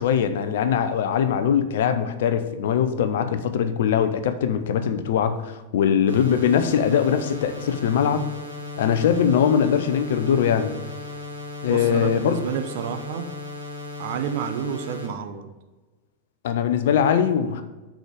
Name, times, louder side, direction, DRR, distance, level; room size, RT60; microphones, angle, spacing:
voice 1, 0.0-8.3 8.8-10.7 11.6-12.4 16.4-17.6, left 8 dB, 55° left, 9 dB, 0.7 m, -21 dB
sound 1, 6.1-15.1, left 2 dB, 80° right, 1.6 m, -36 dB
voice 2, 11.7-13.3 14.0-15.5, right 8 dB, 50° right, 8 dB, 0.8 m, -30 dB
6.2 x 5.0 x 6.8 m, 1.2 s
figure-of-eight pair, 90°, 0 cm